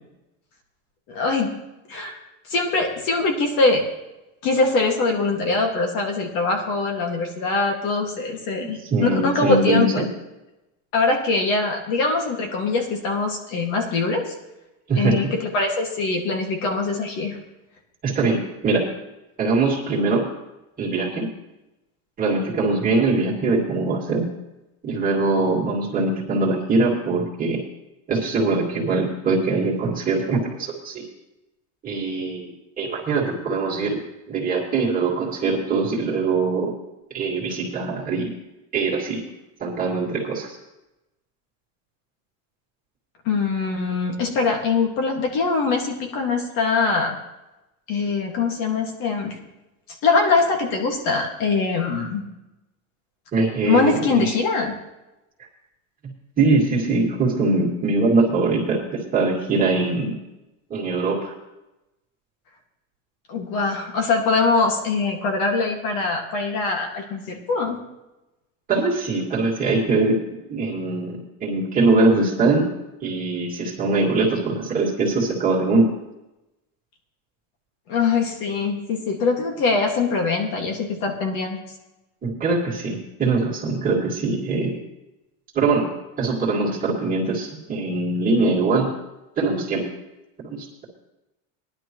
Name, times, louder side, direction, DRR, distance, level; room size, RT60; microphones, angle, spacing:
voice 1, 1.1-1.5 1.9-2.2 2.5-3.8 4.4-10.0 10.9-14.3 15.0-17.4 43.3-47.2 47.9-49.4 50.0-52.3 53.6-54.8 63.3-67.8 77.9-81.6, left 4 dB, 55° left, 2 dB, 2.1 m, -22 dB
voice 2, 8.8-10.1 14.9-15.2 18.0-18.8 19.4-20.3 20.8-21.3 22.2-24.3 24.8-27.6 28.1-31.1 31.8-32.5 32.8-34.0 34.3-36.7 37.1-38.3 38.7-39.2 39.6-40.6 53.3-54.3 55.4-55.5 56.4-60.2 60.7-61.3 68.7-70.2 70.5-72.7 73.0-75.9 82.2-84.8 85.5-85.9 86.2-88.9 89.4-89.8 90.4-90.9, right 3 dB, 20° right, -4 dB, 2.5 m, -22 dB
19.0 x 11.0 x 3.1 m, 0.97 s
cardioid pair, 170°, 40 cm